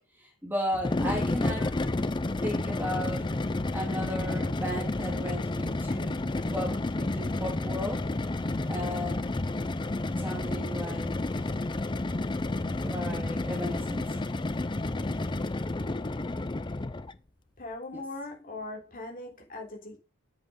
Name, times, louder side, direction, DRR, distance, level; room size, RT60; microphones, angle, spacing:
voice 1, 0.0-1.7 2.4-3.3 3.7-6.2 6.5-8.1 8.7-9.3 10.2-11.2 12.8-14.2 17.9-18.0, equal, 10° right, 2.6 m, -35 dB
sound 1, 0.7-17.2, left 2 dB, 20° left, 0.5 m, -31 dB
voice 2, 17.6-20.0, left 2 dB, 40° left, 3.5 m, -40 dB
7.9 x 7.8 x 5.1 m
head